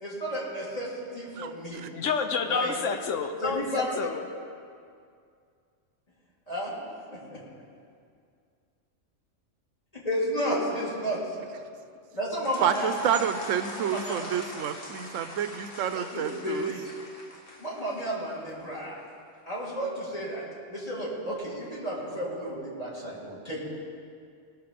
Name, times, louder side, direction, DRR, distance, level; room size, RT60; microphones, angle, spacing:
voice 1, 0.0-1.9 2.5-2.7 3.4-4.1 6.5-6.7 7.1-7.4 10.0-11.2 12.1-13.0 13.9-14.3 15.9-16.9 17.6-19.0 19.5-23.7, equal, 30° left, -5 dB, 2.7 m, -32 dB
voice 2, 1.4-1.9 12.6-16.7, right 9 dB, 80° right, 10 dB, 1.0 m, -29 dB
voice 3, 1.9-4.2, left 5 dB, 75° left, 6 dB, 1.2 m, -29 dB
sound 1, 12.3-18.3, left 1 dB, 50° left, 1.5 m, -40 dB
18.5 x 6.6 x 5.1 m, 2.3 s
omnidirectional pair, 1.3 m